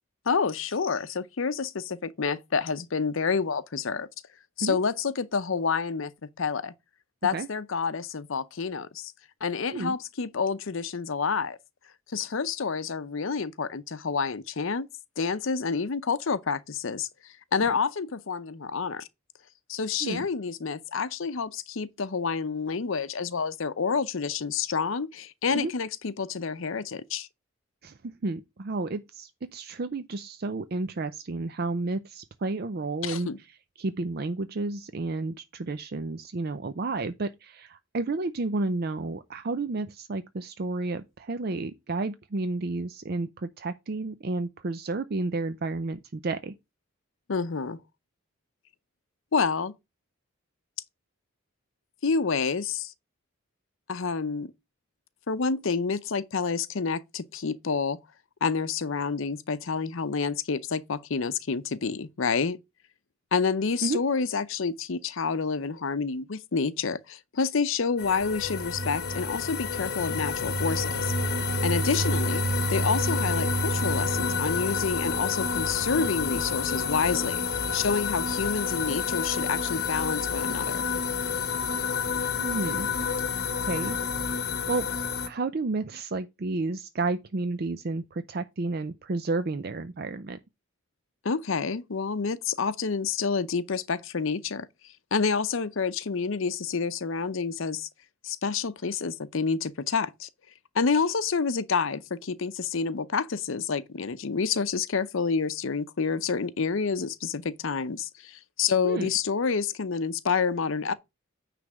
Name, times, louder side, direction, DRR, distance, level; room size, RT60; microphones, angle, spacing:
voice 1, 0.3-4.1 4.6-6.1 6.4-6.7 7.2-9.1 9.4-11.6 12.1-14.9 15.2-17.1 17.5-19.1 19.7-27.3 33.0-33.4 47.3-47.8 49.3-49.7 52.0-52.9 53.9-54.5 55.3-58.0 58.4-62.6 63.3-71.1 71.6-72.4 72.7-77.4 77.7-80.8 91.2-94.7 95.1-97.9 98.2-100.3 100.7-110.9, left 5 dB, 65° left, 0.6 m, -28 dB
voice 2, 27.8-33.3 33.8-46.5 63.8-64.0 82.4-82.9 83.7-84.0 84.7-84.9 85.3-90.4 108.8-109.1, right 3 dB, 45° right, 0.5 m, -31 dB
sound 1, 68.0-85.3, left 4 dB, 50° left, 1.0 m, -28 dB
9.5 x 3.3 x 6.2 m
head